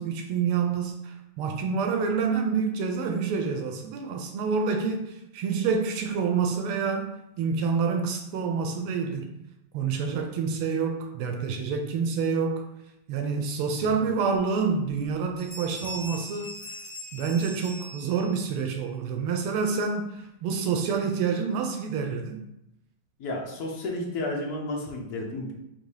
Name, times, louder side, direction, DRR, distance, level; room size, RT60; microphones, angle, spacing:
voice 1, 0.0-9.3 9.7-12.6 13.1-16.5 17.1-22.4, right 5 dB, 85° right, 3 dB, 1.5 m, -27 dB
sound 1, 14.3-14.4 14.9-15.1 15.4-18.5, equal, 20° left, 1.6 m, -41 dB
voice 2, 23.2-25.5, left 2 dB, 60° left, 0 dB, 1.1 m, -32 dB
4.1 x 2.7 x 4.7 m, 0.87 s
omnidirectional pair, 2.4 m